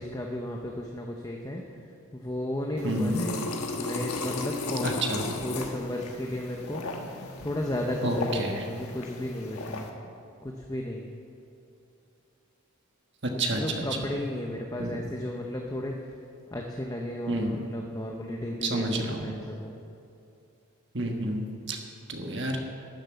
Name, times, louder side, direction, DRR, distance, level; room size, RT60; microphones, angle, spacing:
voice 1, 0.0-1.6 2.1-3.4 3.8-6.8 7.4-9.9 10.4-11.1 13.5-15.9 16.5-19.7, left 1 dB, 15° left, 1 dB, 0.7 m, -34 dB
sound 1, 2.8-9.9, left 3 dB, 80° left, 1.3 m, -35 dB
voice 2, 2.8-3.2 4.8-5.2 8.0-8.6 13.2-13.8 14.8-15.0 17.3-17.5 18.6-19.2 20.9-21.8 22.1-22.6, right 1 dB, 50° right, 2 dB, 1.4 m, -29 dB
12.5 x 7.4 x 8.4 m, 2.6 s
head